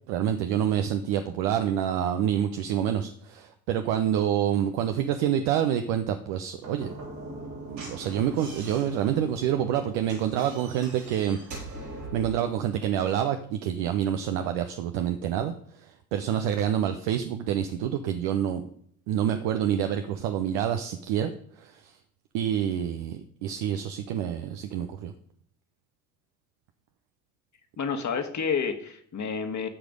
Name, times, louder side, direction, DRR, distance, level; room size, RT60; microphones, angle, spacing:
voice 1, 0.1-6.9 7.7-11.4 12.1-18.6 19.1-22.0 22.3-25.1, right 10 dB, 60° right, 7 dB, 1.0 m, -27 dB
Slam / Knock, 6.5-12.4, right 2 dB, 85° right, 4.2 m, -41 dB
voice 2, 27.8-29.7, left 6 dB, 35° left, 5 dB, 1.7 m, -29 dB
14.5 x 5.1 x 5.2 m, 0.63 s
hypercardioid pair, 65°, 49 cm